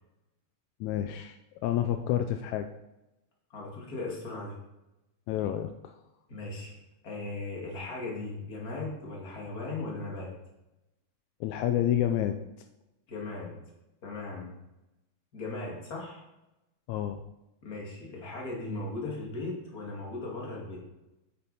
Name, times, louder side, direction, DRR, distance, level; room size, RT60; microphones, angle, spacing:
voice 1, 0.8-2.7 5.3-5.9 11.4-12.4 16.9-17.2, left 11 dB, 80° left, 7 dB, 1.9 m, -29 dB
voice 2, 3.5-4.6 6.3-6.8 7.0-10.3 13.1-13.5 14.0-14.5 15.3-16.2 17.6-20.8, left 2 dB, 30° left, -2 dB, 2.7 m, -37 dB
8.8 x 8.7 x 4.2 m, 0.94 s
omnidirectional pair, 3.3 m